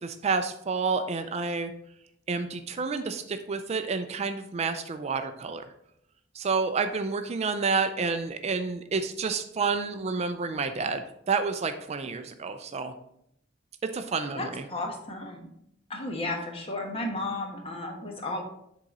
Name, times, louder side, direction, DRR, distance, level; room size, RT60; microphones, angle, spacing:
voice 1, 0.0-1.7 2.3-5.7 6.3-12.9 13.8-14.6, right 4 dB, 35° right, 9 dB, 0.4 m, -29 dB
voice 2, 14.3-15.5 15.9-18.4, left 2 dB, 30° left, 2 dB, 1.2 m, -33 dB
7.5 x 3.8 x 4.1 m, 0.76 s
head